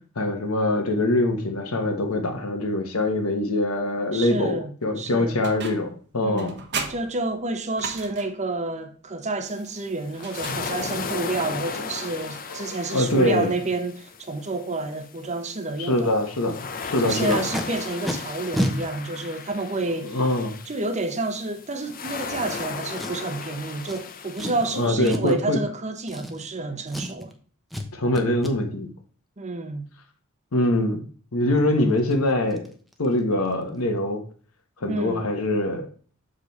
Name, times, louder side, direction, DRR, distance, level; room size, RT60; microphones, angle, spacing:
voice 1, 0.2-6.6 10.5-10.6 12.9-13.5 15.8-17.4 20.0-20.6 24.7-25.6 27.9-28.9 30.5-31.0 31.3-32.7 33.0-34.2 34.8-35.9, left 1 dB, 70° left, 1.2 m, -23 dB
voice 2, 4.1-4.7 5.0-5.4 6.2-6.6 6.9-16.1 17.0-20.2 20.7-27.3 29.4-29.9 34.9-35.3, right 2 dB, 35° right, 0.9 m, -29 dB
sound 1, 5.4-6.0 6.4-8.5 10.1-11.1, right 5 dB, 50° right, 1.1 m, -35 dB
sound 2, 9.5-24.9, left 5 dB, 40° left, 0.7 m, -36 dB
Packing tape duct tape, 17.1-17.6 18.0-18.1 18.5-18.7 19.5-19.6 23.0-23.4 23.9-24.0 24.3-24.7 25.0-25.4 26.0-26.6 26.9-27.3 27.7-27.9 28.1-28.5 31.6-31.7 32.0-32.1 32.5-32.7 32.9-33.2 33.4-33.5, equal, ahead, 0.8 m, -30 dB
6.5 x 5.1 x 4.1 m
head